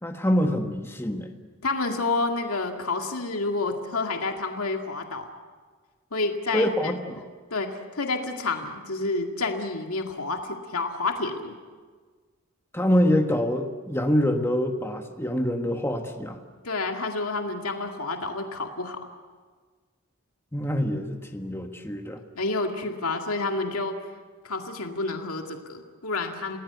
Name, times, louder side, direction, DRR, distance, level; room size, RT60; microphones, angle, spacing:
voice 1, 0.0-1.3 6.5-7.2 12.7-16.4 20.5-22.2, equal, 10° left, 4 dB, 1.4 m, -25 dB
voice 2, 1.6-5.3 6.1-6.9 7.5-11.5 16.6-19.0 22.4-24.0 24.4-26.6, left 3 dB, 90° left, 3 dB, 2.2 m, -29 dB
29.5 x 19.0 x 8.1 m, 1.5 s
head